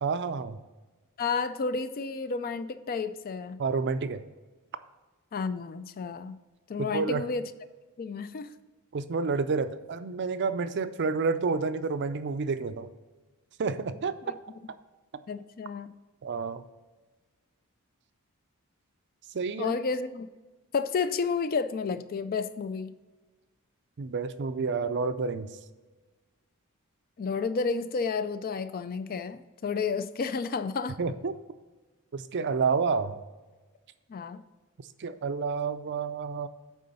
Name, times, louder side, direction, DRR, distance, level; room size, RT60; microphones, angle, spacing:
voice 1, 0.0-0.6 3.6-4.2 6.8-7.2 8.9-12.9 13.6-14.3 16.2-16.6 19.3-19.7 24.0-25.5 31.0-31.3 32.1-33.2 35.0-36.5, right 4 dB, 50° right, 0.4 m, -29 dB
voice 2, 1.2-3.6 5.3-6.4 6.7-7.4 8.0-8.5 15.3-15.9 19.6-20.3 20.7-23.0 27.2-31.0 34.1-34.4, left 5 dB, 40° left, 0.4 m, -31 dB
9.2 x 3.8 x 5.4 m
head